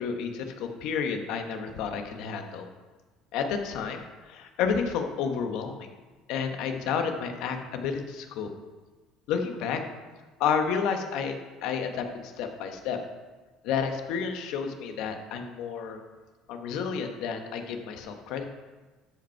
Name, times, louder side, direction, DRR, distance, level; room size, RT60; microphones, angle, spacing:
voice 1, 0.0-2.7 3.3-5.9 6.3-8.5 9.3-9.8 10.4-11.3 11.6-13.0 13.6-16.0 16.5-18.5, left 6 dB, 70° left, 5 dB, 1.2 m, -30 dB
13.0 x 5.3 x 4.5 m, 1.3 s
cardioid pair, 130°, 0 cm